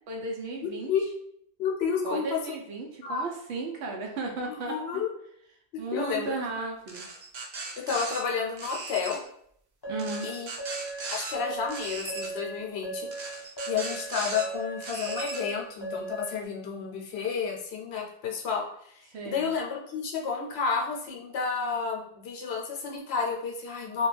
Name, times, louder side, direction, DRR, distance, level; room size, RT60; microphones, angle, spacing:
voice 1, 0.1-0.9 2.0-5.0 5.8-7.1 9.9-10.3 19.1-19.5, right 3 dB, 75° right, 1 dB, 0.9 m, -35 dB
voice 2, 1.6-2.4 3.0-3.2 4.5-5.1 5.7-6.4 7.9-9.2 10.2-10.5 11.1-13.1 13.7-24.1, left 6 dB, 70° left, 0 dB, 0.8 m, -31 dB
sound 1, 6.9-8.2 8.6-9.2 10.0-11.3 11.7-12.3 13.1-14.5 14.8-15.4, right 3 dB, 55° right, 0.5 m, -38 dB
sound 2, 9.8-16.4, right 3 dB, 35° left, 0.4 m, -37 dB
2.3 x 2.2 x 3.1 m, 0.69 s
omnidirectional pair, 1.2 m